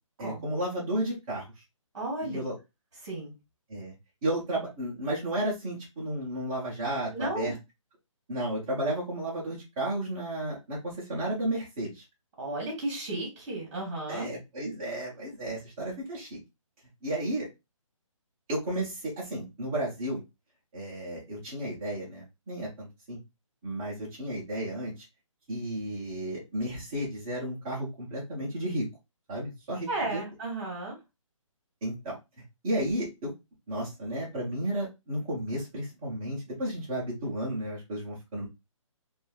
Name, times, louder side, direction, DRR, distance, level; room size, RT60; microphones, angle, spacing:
voice 1, 0.2-1.5 2.2-2.5 3.7-3.9 4.2-7.5 8.3-12.0 14.1-16.3 17.0-17.5 18.5-20.2 20.7-23.2 23.6-24.9 25.5-28.9 29.3-30.2 31.8-32.1 32.6-33.3 33.7-38.5, right 1 dB, 5° right, -6 dB, 0.4 m, -33 dB
voice 2, 1.9-2.4 3.0-3.3 7.1-7.5 12.4-14.3 29.9-31.0, right 2 dB, 30° right, -3 dB, 1.2 m, -34 dB
3.0 x 2.2 x 2.3 m, 0.23 s
hypercardioid pair, 170°, 17 cm